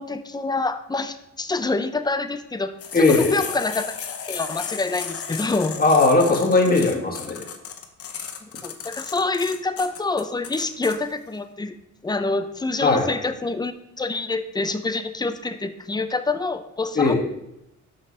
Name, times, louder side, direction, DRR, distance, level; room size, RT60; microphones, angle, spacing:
voice 1, 0.0-3.9 4.3-5.8 8.4-11.7 12.0-17.1, left 3 dB, 15° left, 10 dB, 0.6 m, -26 dB
sound 1, 2.8-11.0, left 7 dB, 50° left, 1.0 m, -34 dB
voice 2, 2.9-3.4 5.8-7.4 12.8-13.1 17.0-17.1, left 3 dB, 30° left, 1 dB, 1.9 m, -18 dB
6.6 x 5.7 x 5.3 m, 0.84 s
cardioid pair, 90°, 30 cm